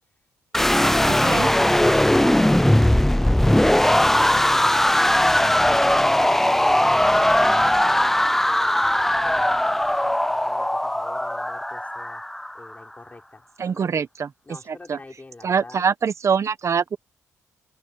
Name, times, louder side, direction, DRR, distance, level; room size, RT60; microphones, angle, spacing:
sound 1, 0.5-12.6, left 1 dB, 5° left, 0.3 m, -19 dB
voice 1, 4.5-5.2 5.4-7.9 8.4-8.9 9.2-12.2 12.5-14.1 14.4-15.9, left 3 dB, 25° left, 5.5 m, -45 dB
voice 2, 13.6-14.3 14.9-15.0 15.4-17.0, right 6 dB, 50° right, 0.9 m, -23 dB
open air
supercardioid pair, 65°, 6 cm